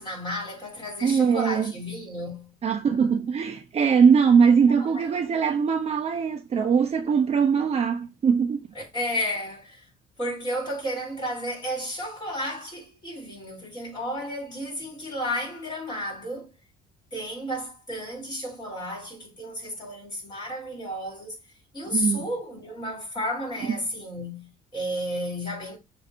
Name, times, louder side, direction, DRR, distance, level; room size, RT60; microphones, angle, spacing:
voice 1, 0.0-2.5 4.8-5.1 8.7-9.9 10.2-16.5 17.1-21.3 21.7-25.8, equal, 25° left, 4.1 m, -32 dB
voice 2, 1.0-1.7 2.6-8.6 21.9-22.3 23.7-23.8, right 6 dB, 35° right, 0.8 m, -21 dB
6.6 x 2.8 x 5.4 m
cardioid pair, 110°, 17 cm